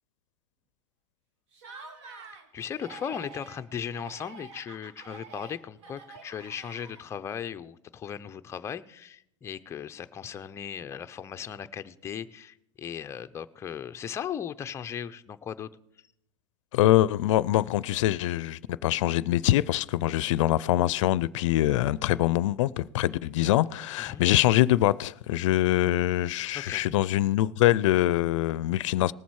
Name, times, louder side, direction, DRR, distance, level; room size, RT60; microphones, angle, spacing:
Laughter, 1.5-2.5 2.7-3.6 3.9-7.3, right 4 dB, 75° right, 1.9 m, -47 dB
voice 1, 2.5-15.7 24.0-24.2 26.5-26.8, left 8 dB, 15° left, 0.5 m, -37 dB
voice 2, 16.7-29.1, left 15 dB, 80° left, 0.4 m, -24 dB
19.0 x 7.2 x 4.7 m
supercardioid pair, 145°, 16 cm